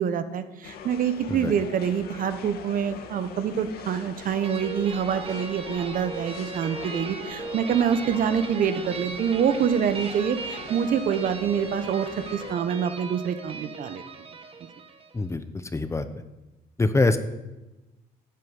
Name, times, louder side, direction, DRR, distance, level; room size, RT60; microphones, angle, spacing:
voice 1, 0.0-14.0, right 8 dB, 55° right, 11 dB, 1.2 m, -26 dB
sound 1, 0.6-12.5, left 7 dB, 65° left, 1.8 m, -43 dB
sound 2, 4.4-15.2, right 4 dB, 35° right, 1.5 m, -38 dB
voice 2, 15.7-16.0 16.8-17.2, left 3 dB, 15° left, 11 dB, 1.0 m, -23 dB
12.5 x 8.8 x 8.1 m, 1.0 s
cardioid pair, 110°, 17 cm